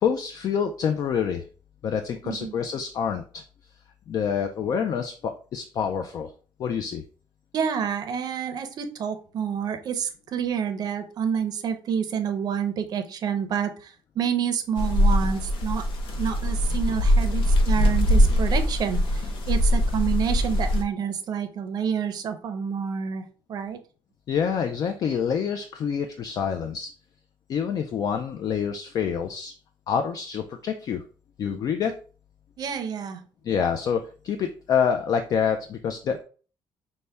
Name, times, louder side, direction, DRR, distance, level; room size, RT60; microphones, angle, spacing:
voice 1, 0.0-1.4 1.8-3.4 4.1-6.3 6.6-7.0 24.3-26.9 27.5-29.5 29.9-31.0 31.4-31.9 33.4-36.2, left 7 dB, 45° left, 6 dB, 0.3 m, -27 dB
voice 2, 7.5-15.8 16.2-23.8 32.6-33.2, right 7 dB, 45° right, 8 dB, 0.5 m, -28 dB
sound 1, 14.8-20.8, equal, 70° left, 0.7 m, -22 dB
5.4 x 2.1 x 3.3 m, 0.39 s
cardioid pair, 165°, 9 cm